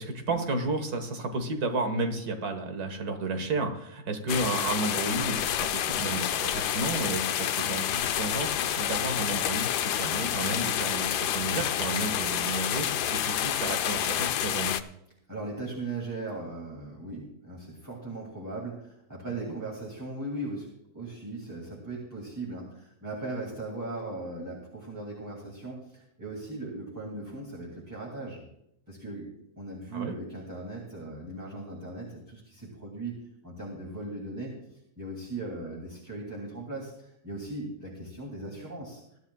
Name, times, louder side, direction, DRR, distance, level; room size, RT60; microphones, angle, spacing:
voice 1, 0.0-14.8 29.9-30.1, right 2 dB, 65° right, 6 dB, 2.1 m, -32 dB
sound 1, 4.3-14.8, left 10 dB, 85° left, 1.2 m, -29 dB
voice 2, 15.3-20.7 20.9-28.4 28.9-29.3 29.6-34.6 35.0-39.0, right 2 dB, 10° right, -4 dB, 2.7 m, -38 dB
22.5 x 12.0 x 2.4 m, 0.77 s
omnidirectional pair, 1.7 m